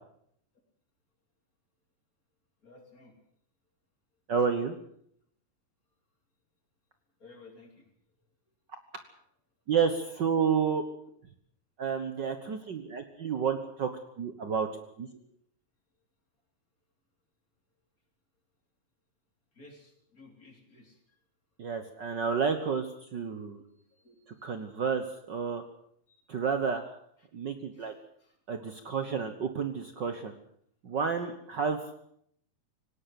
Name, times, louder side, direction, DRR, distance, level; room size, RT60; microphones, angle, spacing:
voice 1, 2.6-3.1 7.2-7.8 15.1-15.2 19.6-21.0 23.9-24.8 26.1-26.2 27.7-27.9 28.2-28.3, left 2 dB, 25° left, 3 dB, 3.9 m, -55 dB
voice 2, 4.3-4.8 9.7-10.8 11.8-13.9 14.2-14.7 15.0-15.1 21.6-23.6 24.4-25.6 26.3-26.8 27.3-27.9 28.5-30.3 30.8-32.0, right 6 dB, 85° right, 8 dB, 0.9 m, -30 dB
18.5 x 18.5 x 7.7 m, 0.67 s
omnidirectional pair, 4.1 m